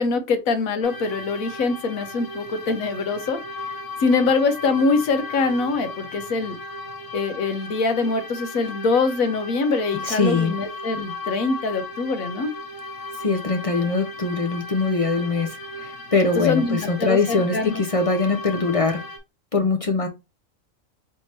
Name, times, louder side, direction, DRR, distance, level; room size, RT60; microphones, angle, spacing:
voice 1, 0.0-3.4 4.0-6.5 7.1-12.5 16.4-17.8, left 4 dB, 85° left, 1.3 m, -23 dB
sound 1, 0.8-19.2, left 2 dB, 65° left, 1.2 m, -36 dB
voice 2, 10.0-10.5 13.2-19.0 19.5-20.1, left 3 dB, 45° left, 0.4 m, -22 dB
4.2 x 3.4 x 3.1 m
omnidirectional pair, 1.4 m